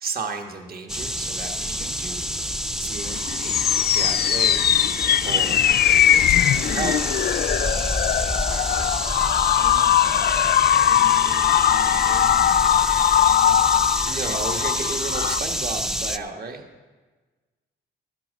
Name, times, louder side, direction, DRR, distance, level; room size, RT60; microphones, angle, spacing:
voice 1, 0.0-2.3 2.8-3.7 3.9-4.7 5.2-5.7 6.2-7.0 7.6-7.8 8.2-8.9 11.0-11.4 13.5-13.7 14.0-16.6, right 4 dB, 50° right, 4 dB, 1.4 m, -34 dB
sound 1, 0.9-16.2, equal, ahead, 0.5 m, -28 dB
voice 2, 1.6-2.0 9.4-10.4 10.8-12.9 13.2-13.5, right 4 dB, 85° right, 2 dB, 1.5 m, -43 dB
sound 2, 3.0-15.4, left 11 dB, 55° left, 0.4 m, -20 dB
12.0 x 10.5 x 6.3 m, 1.3 s
cardioid pair, 90°, 20 cm